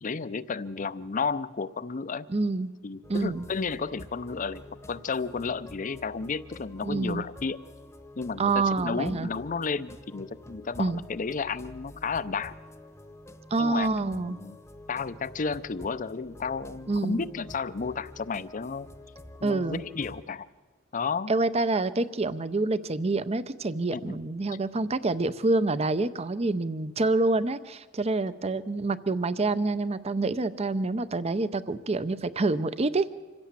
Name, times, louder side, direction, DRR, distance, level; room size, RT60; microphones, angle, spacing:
voice 1, 0.0-2.3 2.8-4.6 4.9-7.6 8.2-12.5 13.6-14.6 14.9-18.9 19.4-20.5 20.9-21.3 23.9-24.2, left 5 dB, 40° left, 15 dB, 0.6 m, -32 dB
voice 2, 2.3-2.7 3.1-3.5 6.8-7.3 8.4-9.3 10.8-11.0 13.5-14.4 16.9-17.2 19.4-19.8 21.3-33.1, right 3 dB, 30° right, 15 dB, 0.6 m, -27 dB
sound 1, 3.0-20.2, left 1 dB, 15° left, 1.0 m, -48 dB
25.5 x 16.0 x 7.4 m, 1.6 s
head